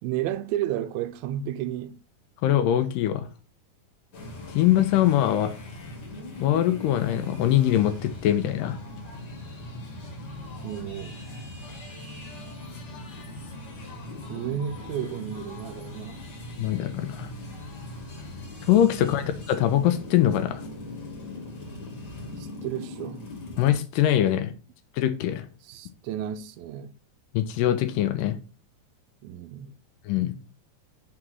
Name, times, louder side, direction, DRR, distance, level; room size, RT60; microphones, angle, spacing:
voice 1, 0.0-2.0 10.6-11.2 14.2-16.3 19.0-19.2 22.4-23.3 25.6-27.0 29.2-29.7, right 11 dB, 85° right, 2.4 m, -32 dB
voice 2, 2.4-3.3 4.5-5.5 6.4-8.8 16.6-17.3 18.7-20.6 23.6-24.5 25.0-25.5 27.3-28.4 30.1-30.3, left 12 dB, 80° left, 2.2 m, -22 dB
sound 1, 4.1-23.7, left 2 dB, 40° left, 1.5 m, -40 dB
6.0 x 3.8 x 6.0 m
omnidirectional pair, 4.1 m